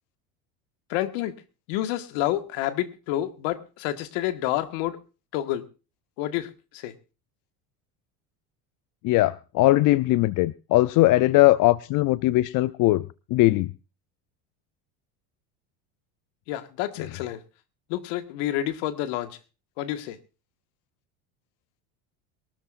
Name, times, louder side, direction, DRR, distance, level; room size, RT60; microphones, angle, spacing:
voice 1, 0.9-1.4 1.7-5.0 5.3-5.7 6.2-6.9 16.5-17.4 17.9-19.4 19.8-20.2, left 13 dB, 70° left, 1.7 m, -29 dB
voice 2, 9.0-13.7, left 18 dB, 50° left, 0.6 m, -20 dB
23.0 x 13.0 x 2.5 m
supercardioid pair, 100°, 42 cm